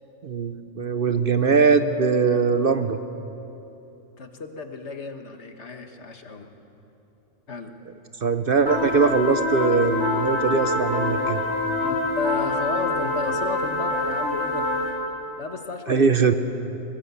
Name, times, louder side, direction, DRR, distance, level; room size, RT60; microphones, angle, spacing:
voice 1, 0.2-3.0 8.2-11.4 15.9-16.3, right 5 dB, 50° right, 9 dB, 0.9 m, -21 dB
voice 2, 4.2-6.5 7.5-7.7 11.8-14.7 15.4-16.1, left 3 dB, 60° left, 5 dB, 1.7 m, -33 dB
sound 1, 8.7-14.9, left 2 dB, 20° right, 4.2 m, -25 dB
21.5 x 19.0 x 8.3 m, 3.0 s
omnidirectional pair, 1.3 m